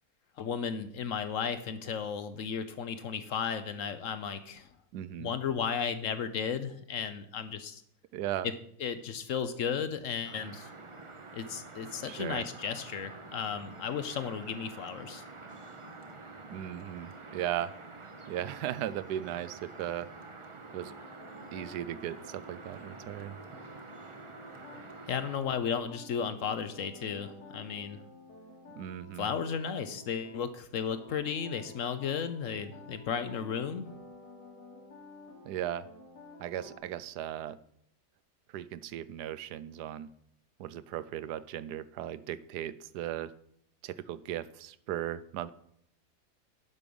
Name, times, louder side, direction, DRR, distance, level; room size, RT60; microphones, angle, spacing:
voice 1, 0.4-4.7 5.2-7.8 8.4-8.5 8.8-10.7 11.3-15.2 25.1-28.0 29.2-33.9, left 7 dB, 65° left, 11 dB, 0.9 m, -34 dB
voice 2, 4.9-5.4 8.1-8.5 12.0-12.5 16.5-17.7 18.3-20.1 20.7-20.9 21.5-23.4 28.8-29.3 35.4-35.9 36.4-37.6 38.5-40.1 40.6-43.3 43.8-45.5, right 12 dB, 85° right, 16 dB, 1.2 m, -37 dB
sound 1, 10.2-25.4, right 3 dB, 30° right, 0.6 m, -48 dB
sound 2, 20.7-30.5 30.9-36.8, left 2 dB, 85° left, 3.4 m, -52 dB
11.0 x 6.3 x 5.3 m, 0.71 s
omnidirectional pair, 1.7 m